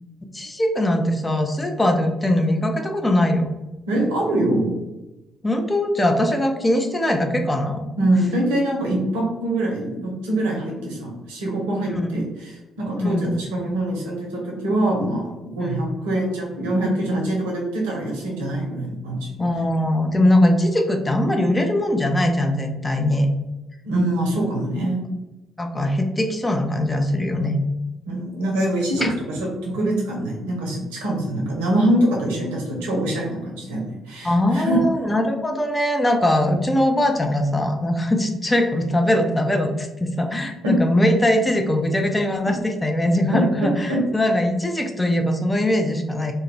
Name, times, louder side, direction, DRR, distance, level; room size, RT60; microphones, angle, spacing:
voice 1, 0.3-3.5 5.4-7.8 11.9-12.1 13.0-13.3 15.6-15.9 19.4-23.3 25.6-27.6 29.0-29.1 34.2-46.3, left 1 dB, 15° left, 4 dB, 0.4 m, -21 dB
voice 2, 3.9-4.8 8.0-19.2 23.8-25.0 28.1-34.8 40.6-40.8 43.3-44.0, right 1 dB, 70° right, -2 dB, 0.6 m, -24 dB
2.2 x 2.1 x 3.1 m, 1.0 s
figure-of-eight pair, 45°, 0 cm